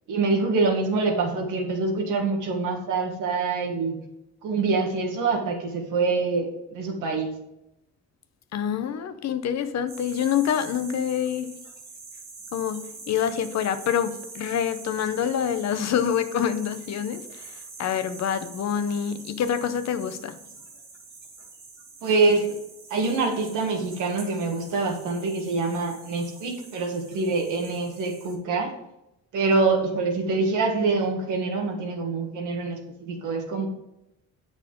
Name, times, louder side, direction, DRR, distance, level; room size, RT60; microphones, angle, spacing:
voice 1, 0.1-4.0 4.4-7.3 22.0-22.5 22.9-28.7 29.3-33.7, right 3 dB, 90° right, 1.6 m, -25 dB
voice 2, 8.5-11.5 12.5-20.4, left 8 dB, 60° left, 0.7 m, -26 dB
sound 1, 9.9-28.3, right 4 dB, 65° right, 2.4 m, -45 dB
7.8 x 6.0 x 3.7 m
cardioid pair, 90°, 30 cm